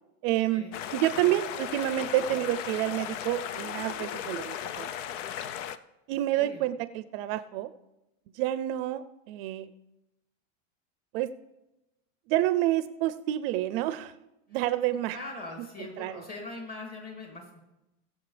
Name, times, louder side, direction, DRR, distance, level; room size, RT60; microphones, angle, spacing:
voice 1, 0.2-4.9 6.1-7.7 8.3-9.7 11.1-11.3 12.3-14.1 14.5-15.2 16.0-16.2, right 14 dB, 55° right, 14 dB, 0.5 m, -28 dB
sound 1, 0.7-5.8, left 10 dB, 85° left, 0.7 m, -36 dB
voice 2, 6.3-6.6 15.1-17.6, left 2 dB, 25° left, 0 dB, 2.6 m, -42 dB
22.0 x 7.4 x 3.3 m, 0.95 s
supercardioid pair, 155°, 36 cm